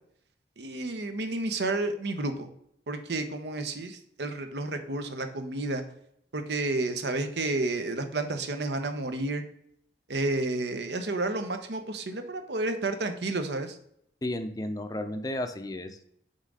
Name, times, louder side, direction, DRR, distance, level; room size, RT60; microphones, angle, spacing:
voice 1, 0.6-2.5 2.9-5.8 6.3-9.4 10.1-13.8, right 2 dB, 75° right, 7 dB, 0.8 m, -31 dB
voice 2, 14.2-16.1, left 1 dB, 20° left, 8 dB, 0.5 m, -33 dB
5.7 x 3.8 x 4.8 m, 0.71 s
head